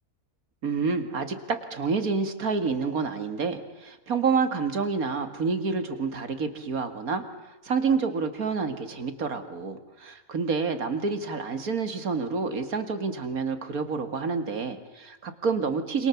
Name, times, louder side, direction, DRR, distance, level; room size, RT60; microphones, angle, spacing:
voice 1, 0.6-16.1, right 5 dB, 65° right, 8 dB, 2.4 m, -28 dB
27.5 x 27.0 x 7.2 m, 1.1 s
omnidirectional pair, 1.7 m